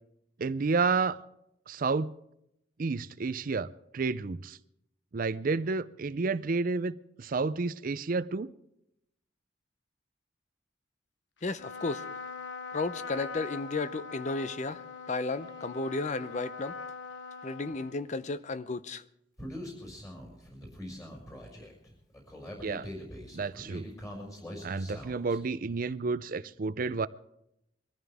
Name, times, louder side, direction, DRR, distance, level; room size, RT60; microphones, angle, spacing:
voice 1, 0.4-1.2 1.7-2.1 2.8-3.7 3.9-4.6 5.1-8.5 22.6-22.9 23.3-23.9 24.6-27.1, right 4 dB, 50° right, 0.5 m, -30 dB
voice 2, 11.4-12.1 12.7-16.7 17.4-19.0, left 3 dB, 40° left, 0.7 m, -33 dB
Trumpet, 11.5-18.4, left 5 dB, 85° left, 1.1 m, -42 dB
Human voice, 19.4-25.4, equal, 20° left, 5.9 m, -43 dB
23.0 x 14.5 x 3.5 m
head